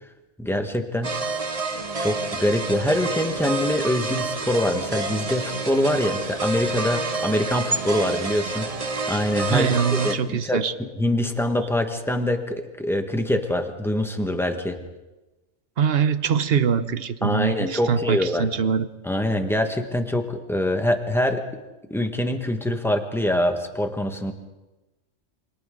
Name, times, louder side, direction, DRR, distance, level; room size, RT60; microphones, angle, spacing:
voice 1, 0.4-1.2 2.0-8.7 9.1-14.8 17.2-18.5 19.0-21.4 21.9-24.3, left 1 dB, ahead, 5 dB, 1.6 m, -24 dB
sound 1, 1.0-10.2, right 3 dB, 30° right, 1.1 m, -28 dB
voice 2, 9.5-10.7 15.8-18.9, right 7 dB, 55° right, 13 dB, 1.0 m, -23 dB
28.5 x 25.5 x 3.9 m, 1.1 s
omnidirectional pair, 1.3 m